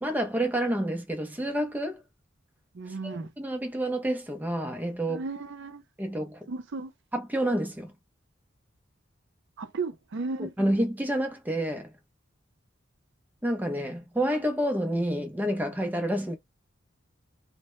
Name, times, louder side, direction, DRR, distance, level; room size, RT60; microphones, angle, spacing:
voice 1, 0.0-2.0 3.0-5.2 6.0-6.5 7.1-7.9 10.6-11.9 13.4-16.4, right 1 dB, 10° right, 0.5 m, -29 dB
voice 2, 2.7-3.3 5.1-5.8 6.5-6.9 9.6-10.5, right 3 dB, 65° right, 0.5 m, -34 dB
2.1 x 2.0 x 2.9 m
head